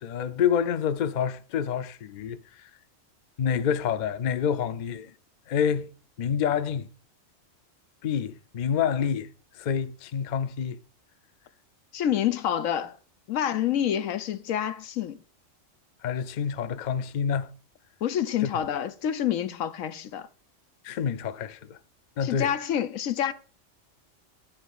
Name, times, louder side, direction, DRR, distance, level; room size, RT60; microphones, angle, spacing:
voice 1, 0.0-2.4 3.4-5.1 5.5-5.9 6.2-6.9 8.0-9.3 9.6-10.8 16.0-17.5 18.4-18.5 20.8-21.8 22.2-22.5, left 7 dB, 50° left, 0.6 m, -27 dB
voice 2, 11.9-13.0 13.3-15.2 18.0-20.3 22.2-23.3, left 10 dB, 85° left, 1.2 m, -27 dB
12.0 x 4.3 x 6.5 m
omnidirectional pair, 1.3 m